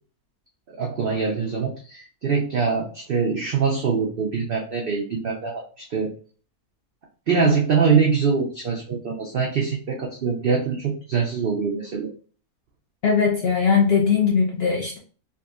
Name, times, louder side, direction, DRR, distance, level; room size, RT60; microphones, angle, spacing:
voice 1, 0.7-6.1 7.3-12.1, right 5 dB, 80° right, 0 dB, 0.5 m, -23 dB
voice 2, 13.0-15.0, left 6 dB, 65° left, -1 dB, 0.6 m, -20 dB
3.7 x 2.6 x 2.4 m, 0.41 s
omnidirectional pair, 1.6 m